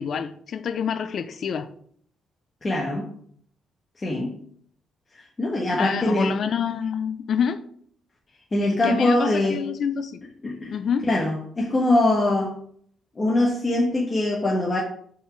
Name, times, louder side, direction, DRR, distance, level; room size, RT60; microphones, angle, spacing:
voice 1, 0.0-1.7 5.8-7.6 8.8-10.2 10.7-11.1, left 7 dB, 60° left, 0.5 m, -27 dB
voice 2, 2.6-3.1 4.0-4.3 5.1-6.3 8.5-9.6 10.4-10.8 11.1-12.5 13.1-14.8, left 1 dB, 30° left, 1.4 m, -23 dB
5.7 x 4.7 x 5.9 m
cardioid pair, 90°, 0 cm